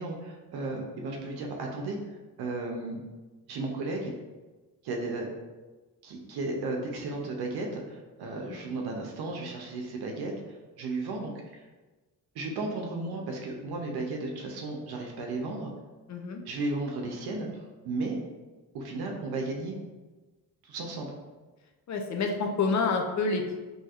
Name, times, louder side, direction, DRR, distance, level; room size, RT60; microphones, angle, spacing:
voice 1, 0.0-2.0 2.4-3.0 3.5-4.1 4.8-5.3 6.0-11.6 12.3-15.7 16.5-18.2 18.7-19.7 20.6-21.1, right 2 dB, 80° right, 1 dB, 0.7 m, -34 dB
voice 2, 16.1-16.4 21.9-23.6, left 4 dB, 50° left, 3 dB, 0.5 m, -28 dB
4.2 x 2.8 x 2.4 m, 1.2 s
cardioid pair, 115°, 37 cm